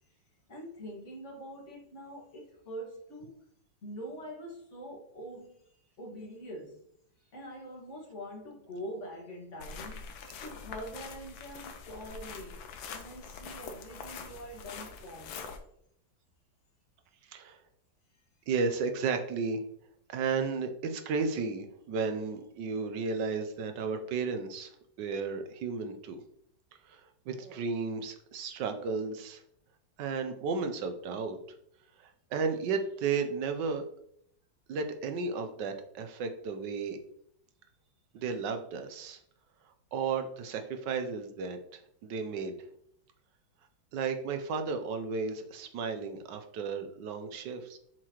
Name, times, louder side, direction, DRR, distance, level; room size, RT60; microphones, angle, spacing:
voice 1, 0.5-3.4 3.8-5.6 6.0-6.8 7.3-10.1 10.4-15.5, equal, 40° left, -2 dB, 2.1 m, -44 dB
sound 1, 9.6-15.6, left 5 dB, 80° left, 1.5 m, -44 dB
voice 2, 18.5-19.6 20.1-24.7 25.0-26.2 26.9-29.4 30.0-31.4 32.0-33.9 34.7-37.0 38.1-39.2 39.9-42.6 43.9-47.8, right 5 dB, 70° right, 7 dB, 1.3 m, -33 dB
7.5 x 4.7 x 3.0 m, 0.70 s
omnidirectional pair, 2.1 m